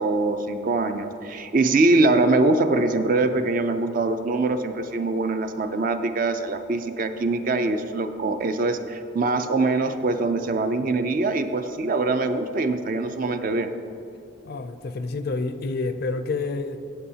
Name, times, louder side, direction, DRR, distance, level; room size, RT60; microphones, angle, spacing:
voice 1, 0.0-13.7, right 2 dB, 40° right, 9 dB, 0.4 m, -23 dB
voice 2, 14.4-16.8, left 3 dB, 50° left, 10 dB, 0.4 m, -28 dB
13.5 x 7.8 x 2.8 m, 2.8 s
head